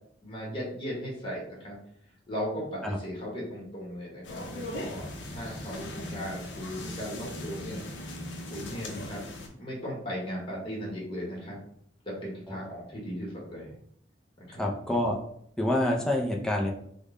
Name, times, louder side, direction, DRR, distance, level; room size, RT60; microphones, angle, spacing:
voice 1, 0.2-1.8 2.3-7.8 8.5-9.2 9.6-11.6 12.0-13.8 14.4-14.6, equal, 30° left, -4 dB, 1.0 m, -37 dB
sound 1, 4.2-9.5, left 1 dB, 75° left, 0.6 m, -39 dB
voice 2, 14.6-15.2 15.6-16.7, left 1 dB, 5° left, 0 dB, 0.4 m, -27 dB
3.6 x 2.2 x 3.6 m, 0.68 s
head